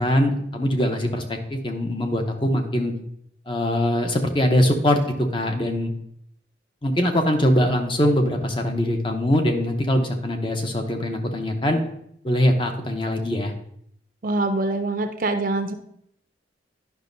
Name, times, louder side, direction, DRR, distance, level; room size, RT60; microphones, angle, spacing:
voice 1, 0.0-2.9 3.5-5.9 6.8-11.8 12.2-13.5, left 1 dB, 30° left, 4 dB, 0.8 m, -22 dB
voice 2, 14.2-15.7, right 2 dB, 45° right, 6 dB, 0.5 m, -24 dB
10.0 x 5.9 x 2.6 m, 0.71 s
head